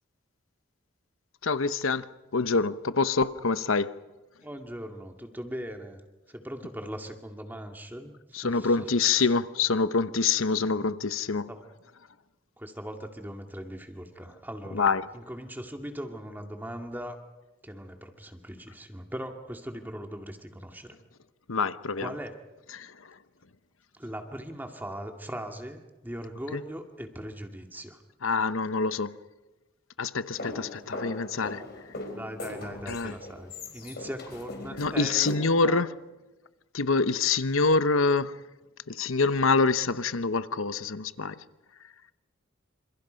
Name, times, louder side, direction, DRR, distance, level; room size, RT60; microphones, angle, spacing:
voice 1, 1.4-2.1 2.3-3.9 8.3-11.5 14.7-15.1 21.5-22.1 22.7-22.9 28.2-29.2 30.0-31.6 32.9-33.1 34.8-35.9 36.7-38.3 38.9-41.3, left 4 dB, 85° left, 0.9 m, -26 dB
voice 2, 4.4-6.0 6.3-9.3 11.5-11.6 12.6-17.2 17.6-21.0 22.0-22.4 23.9-28.0 32.1-35.8, equal, 10° right, 2.1 m, -40 dB
sound 1, 30.3-35.4, left 2 dB, 50° left, 4.5 m, -40 dB
27.5 x 27.5 x 5.2 m
head